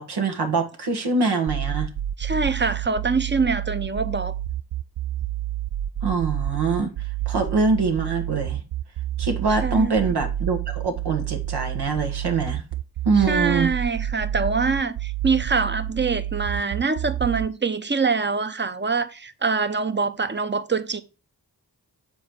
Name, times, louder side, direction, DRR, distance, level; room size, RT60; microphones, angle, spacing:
voice 1, 0.0-1.9 6.0-6.9 7.3-8.6 9.2-12.6 13.0-13.7, right 4 dB, 80° right, 1.4 m, -24 dB
sound 1, 1.5-17.5, right 12 dB, 65° right, 0.5 m, -29 dB
voice 2, 2.2-4.3 9.5-10.0 13.3-21.0, right 4 dB, 30° right, 0.8 m, -24 dB
7.1 x 3.9 x 4.5 m
cardioid pair, 50°, 39 cm